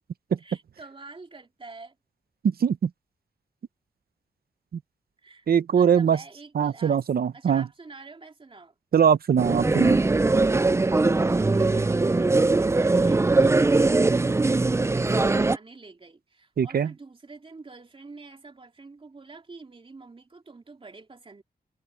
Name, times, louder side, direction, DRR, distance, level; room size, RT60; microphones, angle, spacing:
voice 1, 0.4-2.0 5.2-5.5 5.7-7.0 7.3-8.7 11.0-21.4, right 3 dB, 30° right, 2.9 m, -47 dB
voice 2, 2.4-2.9 5.5-6.2 6.5-7.7 8.9-10.0 16.6-16.9, right 7 dB, 65° right, 0.7 m, -21 dB
sound 1, 9.4-15.6, right 3 dB, 15° right, 0.4 m, -21 dB
wide cardioid pair, 145°, 17 cm